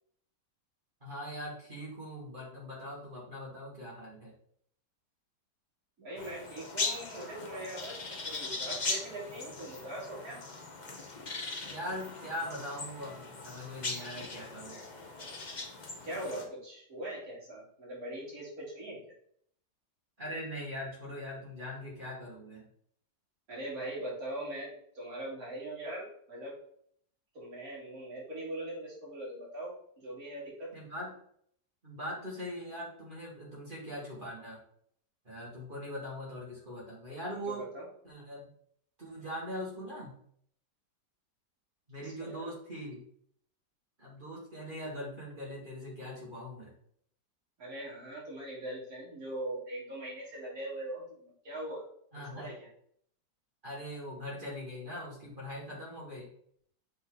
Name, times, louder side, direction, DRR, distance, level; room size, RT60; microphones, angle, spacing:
voice 1, 1.0-4.3 11.6-14.8 20.2-22.7 30.7-31.2 31.8-34.6 35.3-37.7 38.0-38.5 39.0-40.2 41.9-43.0 44.0-46.7 52.1-52.6 53.6-56.3, equal, 30° right, -5 dB, 2.1 m, -41 dB
voice 2, 6.0-8.0 8.3-10.4 16.0-19.0 23.5-26.6 27.4-30.7 37.5-37.9 42.0-42.5 47.6-51.8 52.3-52.7, right 1 dB, 55° right, -6 dB, 3.4 m, -41 dB
sound 1, 6.2-16.5, left 3 dB, 30° left, 0.9 m, -39 dB
7.4 x 4.3 x 3.9 m, 0.64 s
omnidirectional pair, 1.9 m